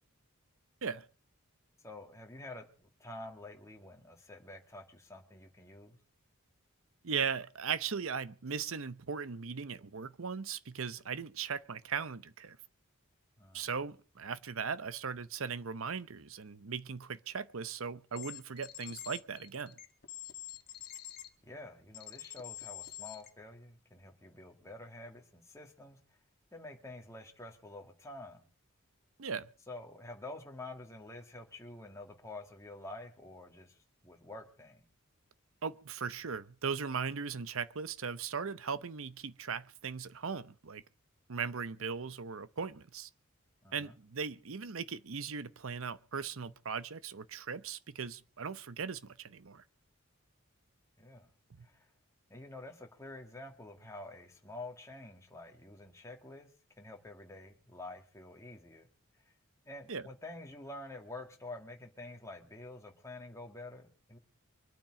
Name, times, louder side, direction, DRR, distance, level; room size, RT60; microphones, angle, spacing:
voice 1, 1.8-6.0 13.4-13.7 21.4-26.0 26.5-28.5 29.7-34.9 43.6-43.9 51.0-51.3 51.6-51.9 52.3-56.5 56.8-58.9 59.7-64.2, left 2 dB, 15° left, 2.1 m, -48 dB
voice 2, 7.0-12.6 13.5-19.8 29.2-29.5 35.6-40.8 41.3-43.1 43.7-49.6 51.6-51.7 59.9-60.1, right 6 dB, 65° right, 0.8 m, -38 dB
sound 1, 18.1-21.3 21.9-23.3, left 12 dB, 45° left, 1.5 m, -46 dB
24.5 x 9.0 x 4.9 m
head